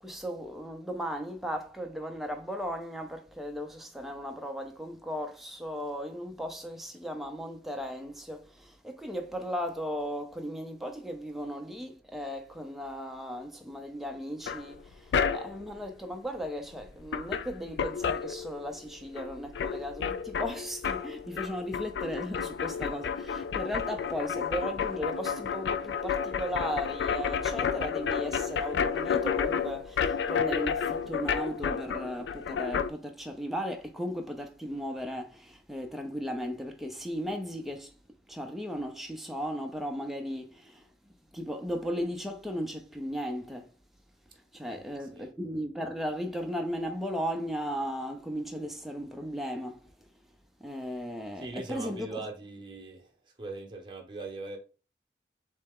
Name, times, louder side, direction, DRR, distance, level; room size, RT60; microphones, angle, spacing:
voice 1, 0.0-37.9 38.3-40.9 41.3-43.7 44.5-49.9 50.6-52.2, equal, ahead, 0.5 m, -36 dB
sound 1, 14.5-15.7 16.7-16.8 17.1-18.9 19.2-32.9, left 7 dB, 85° left, 0.4 m, -31 dB
voice 2, 44.7-45.3 51.4-53.1 53.4-54.6, right 3 dB, 25° right, 0.9 m, -41 dB
4.1 x 3.3 x 3.6 m
head